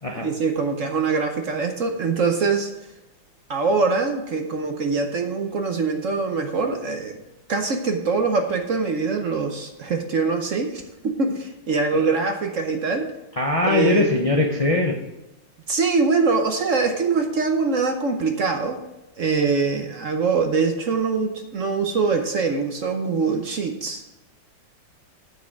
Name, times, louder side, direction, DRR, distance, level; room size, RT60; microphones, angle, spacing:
voice 1, 0.2-2.7 3.5-7.2 7.5-13.1 13.6-14.1 15.7-18.8 19.2-24.0, right 4 dB, 55° right, 5 dB, 1.0 m, -23 dB
voice 2, 13.4-15.0, left 2 dB, 45° left, 2 dB, 0.4 m, -21 dB
9.4 x 7.6 x 4.6 m, 0.99 s
omnidirectional pair, 2.1 m